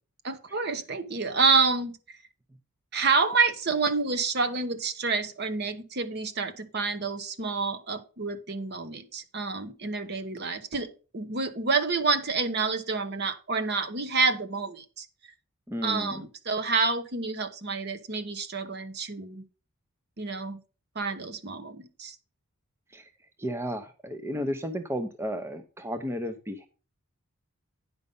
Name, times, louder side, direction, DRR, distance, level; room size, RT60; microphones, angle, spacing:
voice 1, 0.2-2.2 2.9-15.1 15.8-19.4 20.2-20.6 20.9-22.1, right 4 dB, 50° right, 10 dB, 1.0 m, -28 dB
voice 2, 15.7-16.2 22.9-23.1 23.4-26.7, equal, 10° right, 8 dB, 0.6 m, -33 dB
9.8 x 5.4 x 5.3 m, 0.34 s
head